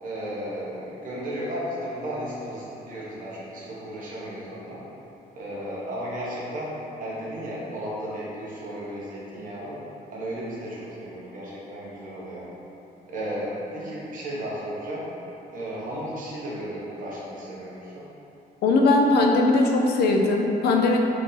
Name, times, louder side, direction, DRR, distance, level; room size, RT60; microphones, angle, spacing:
voice 1, 0.0-4.8 5.3-6.7 7.0-9.7 10.1-12.5 13.1-15.1 15.5-18.0, equal, 55° right, -7 dB, 1.0 m, -34 dB
voice 2, 18.6-21.0, left 2 dB, 85° left, 2 dB, 0.5 m, -20 dB
4.6 x 2.7 x 3.9 m, 3.0 s
cardioid pair, 165°, 16 cm